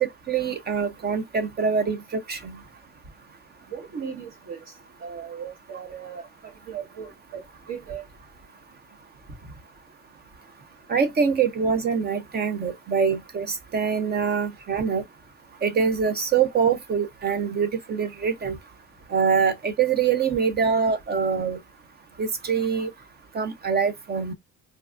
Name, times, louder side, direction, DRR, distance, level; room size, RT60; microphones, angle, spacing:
voice 1, 0.0-2.6 10.9-15.0 15.6-18.6 19.1-21.6 22.2-22.9 23.3-24.3, right 6 dB, 30° right, 0.5 m, -24 dB
voice 2, 3.7-4.6 5.0-6.3 6.7-7.4 7.7-8.0, right 7 dB, 45° right, 1.6 m, -36 dB
4.6 x 2.5 x 2.4 m
cardioid pair, 145°, 35 cm